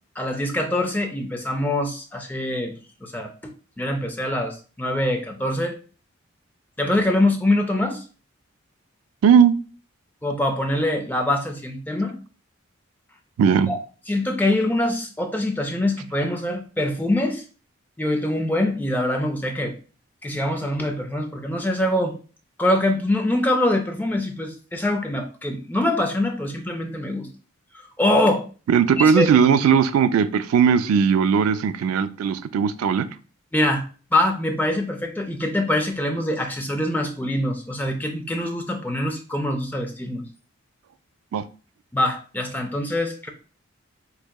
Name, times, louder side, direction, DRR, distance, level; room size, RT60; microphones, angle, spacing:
voice 1, 0.2-2.7 3.0-3.3 3.8-5.8 6.8-8.0 10.2-12.1 13.7-13.8 14.1-17.4 18.0-19.7 20.2-22.1 22.6-27.3 28.0-28.4 29.0-29.3 33.5-33.8 34.1-40.2 41.9-43.3, left 1 dB, 10° left, 4 dB, 0.4 m, -24 dB
voice 2, 9.2-9.5 13.4-13.7 28.7-33.1 41.3-41.4, right 7 dB, 90° right, 13 dB, 0.3 m, -18 dB
4.6 x 2.7 x 2.2 m, 0.37 s
head